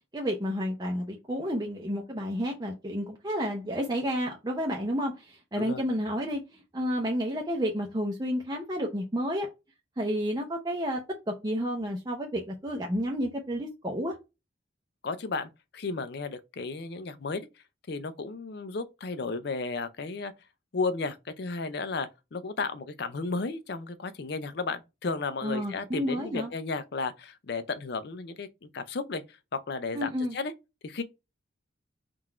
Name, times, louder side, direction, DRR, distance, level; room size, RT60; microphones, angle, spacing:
voice 1, 0.1-9.5 10.0-11.0 11.3-14.2 25.4-26.5 29.9-30.3, equal, 20° right, 0.6 m, -31 dB
voice 2, 15.0-17.5 17.9-20.3 20.7-29.2 29.5-30.5 30.8-31.0, left 4 dB, 55° left, 0.5 m, -34 dB
3.8 x 2.4 x 4.3 m
head